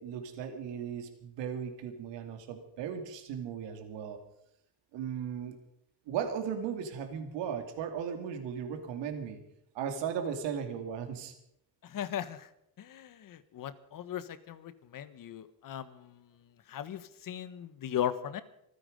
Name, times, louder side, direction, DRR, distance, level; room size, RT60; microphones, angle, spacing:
voice 1, 0.0-4.2 4.9-5.6 6.1-9.4 9.7-11.3, right 7 dB, 75° right, 7 dB, 2.5 m, -36 dB
voice 2, 11.8-12.5 12.8-16.3 16.7-18.4, left 10 dB, 50° left, 14 dB, 1.2 m, -38 dB
26.0 x 9.6 x 5.2 m, 0.75 s
cardioid pair, 110°, 43 cm